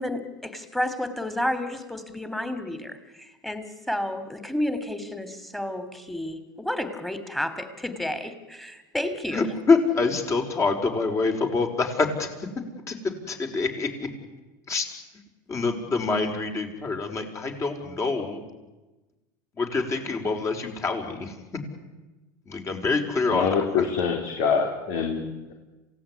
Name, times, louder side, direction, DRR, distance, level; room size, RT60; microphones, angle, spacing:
voice 1, 0.0-9.5, left 1 dB, 5° left, 11 dB, 3.2 m, -31 dB
voice 2, 9.3-12.3 12.9-13.9 14.7-14.9 15.5-18.4 19.6-21.3 22.5-23.5, left 4 dB, 30° left, 4 dB, 5.3 m, -26 dB
voice 3, 23.3-25.5, left 6 dB, 65° left, 3 dB, 3.9 m, -25 dB
27.5 x 17.5 x 10.0 m, 1.1 s
supercardioid pair, 105°, 10 cm